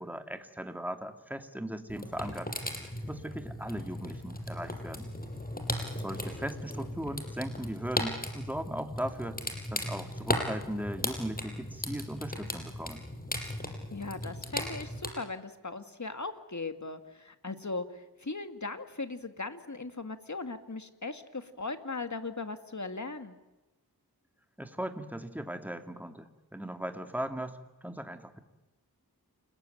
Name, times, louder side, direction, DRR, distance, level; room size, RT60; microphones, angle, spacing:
voice 1, 0.0-2.5 3.0-5.1 6.0-9.4 9.7-13.0 24.6-28.4, right 1 dB, 5° right, 6 dB, 2.5 m, -38 dB
sound 1, 1.9-15.1, left 1 dB, 25° left, 5.5 m, -37 dB
voice 2, 13.9-23.4, left 3 dB, 50° left, 8 dB, 2.2 m, -38 dB
29.5 x 21.0 x 9.2 m, 1.1 s
wide cardioid pair, 65°, 37 cm